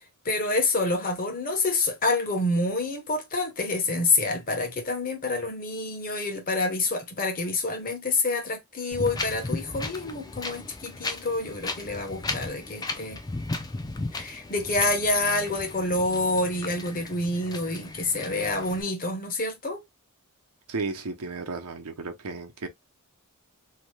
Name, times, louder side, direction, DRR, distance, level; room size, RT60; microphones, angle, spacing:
voice 1, 0.2-13.2 14.1-19.8, left 2 dB, 40° left, 0.9 m, -27 dB
Wind, 8.9-18.8, left 2 dB, 15° left, 0.4 m, -36 dB
voice 2, 20.7-22.7, right 3 dB, 90° right, 0.7 m, -33 dB
2.8 x 2.2 x 3.1 m
head